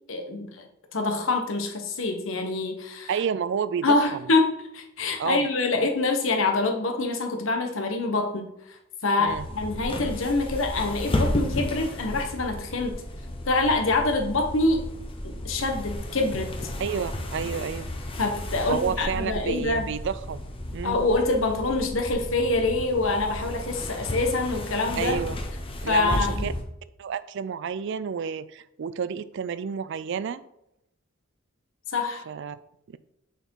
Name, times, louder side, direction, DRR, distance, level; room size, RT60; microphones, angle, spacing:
voice 1, 0.1-0.6 0.9-3.1 3.8-8.5 9.0-13.0 13.5-14.8 15.4-16.5 18.2-19.9 20.8-25.2 25.9-26.5 31.9-32.2, left 3 dB, 80° left, 3 dB, 1.1 m, -25 dB
voice 2, 3.1-4.0 5.2-5.4 9.2-9.5 16.8-17.9 18.7-20.4 20.7-21.0 25.0-25.4 25.8-26.5 27.0-30.4 32.3-32.6 32.9-33.0, right 7 dB, 65° right, 15 dB, 0.4 m, -30 dB
sound 1, 9.3-26.6, left 1 dB, 30° left, 0.9 m, -33 dB
6.5 x 4.5 x 4.6 m, 0.80 s
head